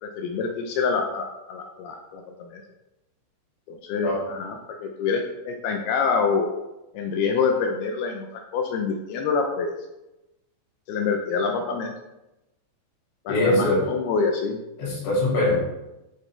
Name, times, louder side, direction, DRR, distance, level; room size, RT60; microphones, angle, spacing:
voice 1, 0.0-2.6 3.7-6.5 6.9-9.7 10.9-11.9 13.3-14.6, left 5 dB, 80° left, 3 dB, 2.3 m, -26 dB
voice 2, 13.3-13.8 14.8-15.5, left 1 dB, 65° left, -5 dB, 4.8 m, -22 dB
11.5 x 7.5 x 3.4 m, 0.98 s
omnidirectional pair, 5.4 m